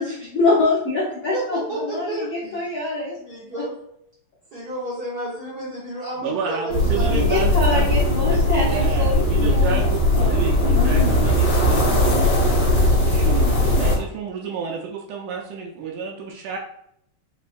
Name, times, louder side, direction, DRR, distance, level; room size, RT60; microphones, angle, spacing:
voice 1, 0.0-3.2 7.1-11.2, left 3 dB, 80° left, -7 dB, 1.1 m, -25 dB
voice 2, 1.2-2.7 3.1-3.8 4.5-7.2, right 1 dB, 55° right, -8 dB, 1.1 m, -31 dB
voice 3, 6.2-8.4 8.7-16.6, right 5 dB, 80° right, 0 dB, 2.0 m, -30 dB
sound 1, 6.7-14.0, left 1 dB, 50° left, 2.2 m, -19 dB
5.3 x 3.0 x 2.4 m, 0.72 s
omnidirectional pair, 3.9 m